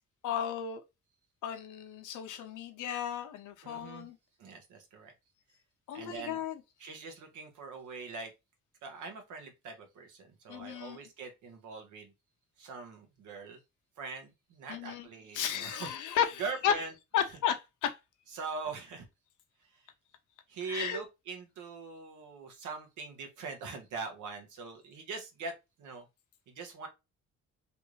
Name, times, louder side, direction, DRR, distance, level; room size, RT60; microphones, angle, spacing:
voice 1, 0.2-0.8 1.4-4.2 5.9-6.6 10.5-11.0 14.7-15.1 15.3-16.7 17.1-18.0 20.7-21.0, left 9 dB, 80° left, 0.8 m, -33 dB
voice 2, 3.6-4.1 4.4-5.1 5.9-6.4 6.8-8.3 8.8-12.1 12.6-13.6 14.0-15.9 16.4-16.9 18.3-19.1 19.6-19.8 20.5-26.1 26.5-26.9, right 4 dB, 80° right, 1.2 m, -42 dB
3.3 x 2.6 x 3.1 m
cardioid pair, 90°, 30 cm